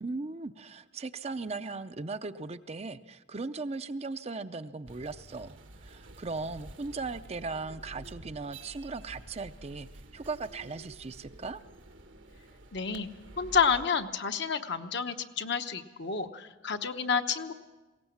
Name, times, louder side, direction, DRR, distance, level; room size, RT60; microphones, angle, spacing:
voice 1, 0.0-9.9 10.1-11.6, right 3 dB, 35° right, 11 dB, 0.5 m, -38 dB
sound 1, 4.9-13.9, right 1 dB, 85° right, 1.7 m, -50 dB
voice 2, 12.7-13.1 13.4-17.5, left 6 dB, 65° left, 7 dB, 1.0 m, -29 dB
21.0 x 17.5 x 7.2 m, 1.2 s
head